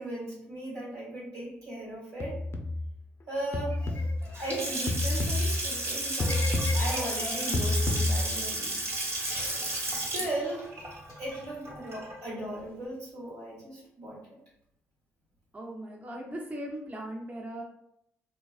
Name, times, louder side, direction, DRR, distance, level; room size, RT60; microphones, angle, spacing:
voice 1, 0.0-2.4 3.3-4.1 4.4-6.4 6.7-8.8 9.9-10.7 11.2-14.2, right 1 dB, 85° right, -6 dB, 1.3 m, -37 dB
sound 1, 2.2-3.0 3.5-5.9 6.2-8.6, left 2 dB, 45° left, 0.4 m, -29 dB
Water tap faucet / Sink (filling or washing) / Splash splatter, 4.2-12.3, right 1 dB, 45° right, 0.9 m, -33 dB
Hiss, 9.3-11.3, left 2 dB, 90° left, 0.6 m, -48 dB
voice 2, 15.5-17.6, right 1 dB, 25° right, -1 dB, 0.6 m, -38 dB
2.3 x 2.2 x 2.4 m, 0.77 s
supercardioid pair, 50°, 6 cm